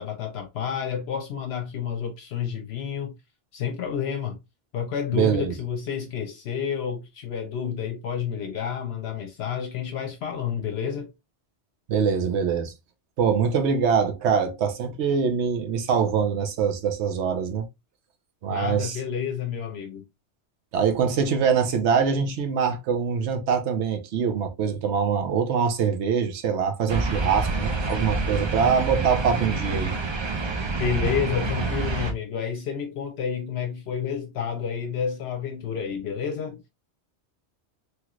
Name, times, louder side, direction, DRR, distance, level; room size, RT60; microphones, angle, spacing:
voice 1, 0.0-3.1 3.5-4.4 4.7-11.1 18.5-20.0 30.8-36.6, left 7 dB, 70° left, 0.8 m, -30 dB
voice 2, 5.1-5.5 11.9-12.7 13.2-17.7 18.4-19.0 20.7-29.9, right 6 dB, 85° right, 1.0 m, -24 dB
sound 1, 26.9-32.1, right 3 dB, 45° right, 0.3 m, -27 dB
3.1 x 3.0 x 2.3 m
omnidirectional pair, 1.1 m